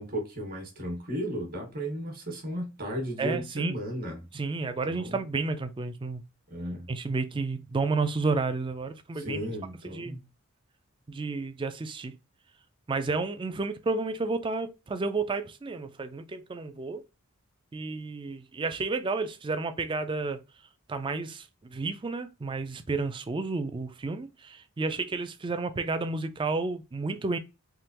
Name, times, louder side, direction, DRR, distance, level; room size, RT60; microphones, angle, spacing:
voice 1, 0.0-4.2 4.9-5.2 6.5-6.9 9.1-10.2, equal, 45° right, 1.3 m, -35 dB
voice 2, 3.2-3.7 4.3-6.2 6.9-9.4 9.8-10.2 11.1-12.1 12.9-17.0 17.7-20.4 20.9-27.4, right 3 dB, 25° right, 0.4 m, -31 dB
3.6 x 2.9 x 2.8 m
head